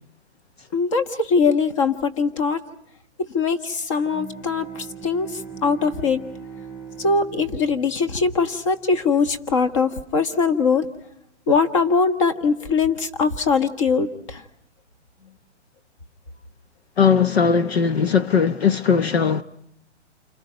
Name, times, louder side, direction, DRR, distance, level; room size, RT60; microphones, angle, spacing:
voice 1, 0.7-2.6 3.3-4.7 5.0-5.3 5.6-6.2 7.0-10.9 11.5-14.4, left 4 dB, 25° left, 1.5 m, -21 dB
Bowed string instrument, 3.9-9.3, right 6 dB, 10° left, 6.7 m, -40 dB
voice 2, 17.0-19.4, left 6 dB, 60° left, 1.0 m, -19 dB
30.0 x 25.5 x 5.2 m
hypercardioid pair, 175°, 35 cm